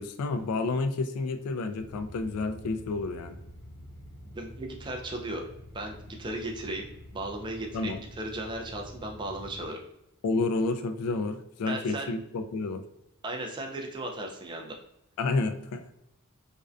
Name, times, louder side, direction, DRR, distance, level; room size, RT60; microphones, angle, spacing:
voice 1, 0.0-3.4 7.7-8.0 10.2-12.8 15.2-15.9, left 3 dB, 80° left, 8 dB, 0.3 m, -30 dB
sound 1, 1.7-9.7, left 1 dB, 55° left, 0.9 m, -47 dB
voice 2, 4.2-5.4 5.7-9.8 11.7-12.1 13.2-14.8, right 1 dB, 20° right, 1 dB, 0.3 m, -36 dB
2.5 x 2.1 x 2.3 m, 0.83 s
head